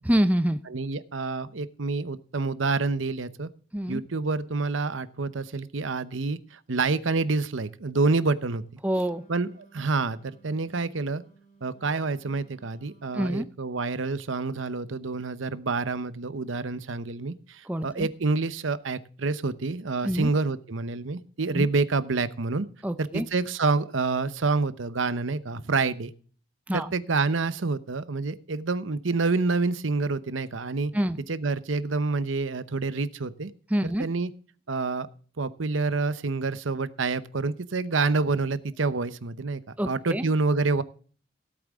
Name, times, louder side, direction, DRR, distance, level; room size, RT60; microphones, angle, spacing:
voice 1, 0.0-0.6 3.7-4.0 8.8-9.2 13.1-13.5 17.7-18.1 20.0-20.3 21.5-21.7 22.8-23.3 26.7-26.9 30.9-31.2 33.7-34.1 39.8-40.3, equal, 10° right, 10 dB, 0.5 m, -26 dB
voice 2, 0.7-3.5 3.9-8.6 9.3-11.2 11.6-22.7 23.0-26.1 26.7-30.9 31.3-33.5 33.8-34.3 34.7-35.1 35.4-40.8, right 3 dB, 85° right, 14 dB, 0.9 m, -28 dB
Wind instrument woodwind instrument, 8.8-13.5, right 4 dB, 40° left, 3.1 m, -58 dB
17.0 x 8.6 x 3.6 m, 0.43 s
head